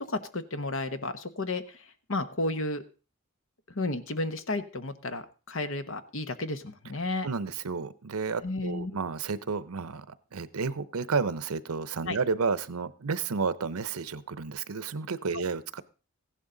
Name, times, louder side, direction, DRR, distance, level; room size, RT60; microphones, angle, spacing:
voice 1, 0.0-2.8 3.7-7.3 8.4-9.0 12.1-12.2, left 2 dB, 65° left, 11 dB, 1.1 m, -32 dB
voice 2, 7.2-15.8, right 5 dB, 85° right, 16 dB, 0.7 m, -31 dB
15.0 x 11.5 x 3.9 m, 0.34 s
head